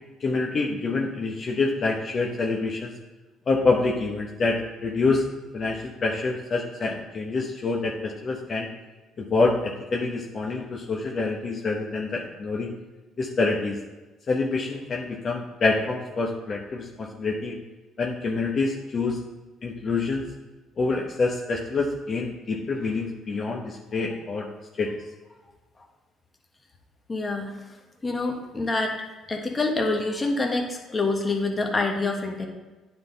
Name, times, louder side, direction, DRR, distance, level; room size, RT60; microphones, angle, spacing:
voice 1, 0.2-2.9 3.5-5.2 5.5-8.7 9.2-12.7 13.2-13.8 14.3-17.6 18.0-19.2 19.6-20.2 20.8-24.5 24.8-24.9, left 3 dB, 45° left, -2 dB, 1.0 m, -26 dB
voice 2, 27.1-27.5 28.0-29.0 29.3-32.5, left 3 dB, 25° left, 2 dB, 1.4 m, -26 dB
9.5 x 3.9 x 4.0 m, 1.2 s
supercardioid pair, 75°, 0 cm